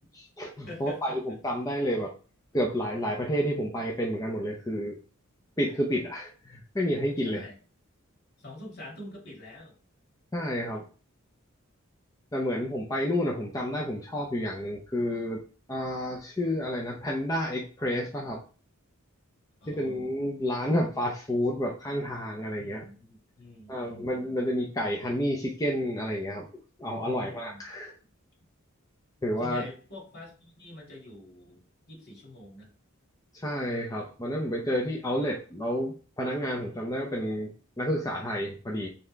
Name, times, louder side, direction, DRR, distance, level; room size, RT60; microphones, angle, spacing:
voice 1, 0.1-2.1 2.5-5.0 5.6-7.5 10.3-10.9 12.3-15.4 15.7-18.4 19.7-22.8 23.7-26.5 26.8-27.9 29.2-29.6 33.3-38.9, equal, 15° left, -1 dB, 0.7 m, -30 dB
voice 2, 0.7-1.2 1.4-1.5 7.2-7.6 8.4-9.8 19.6-20.1 22.6-24.1 27.0-27.6 29.4-32.7, left 1 dB, 50° left, -2 dB, 2.1 m, -45 dB
4.1 x 3.5 x 3.3 m, 0.37 s
head